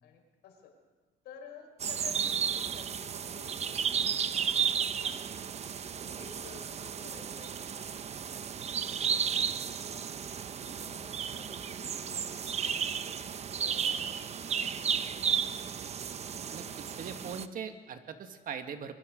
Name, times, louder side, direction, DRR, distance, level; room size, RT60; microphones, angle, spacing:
voice 1, 0.0-0.7 1.2-4.6 5.0-5.7 6.0-10.1 10.6-13.3 13.6-15.7, left 6 dB, 80° left, 3 dB, 5.1 m, -54 dB
sound 1, 1.8-17.5, right 7 dB, 40° right, 0.9 m, -33 dB
voice 2, 16.5-19.0, right 6 dB, 55° right, 7 dB, 2.0 m, -41 dB
24.0 x 22.5 x 5.3 m, 1.3 s
cardioid pair, 110°, 17 cm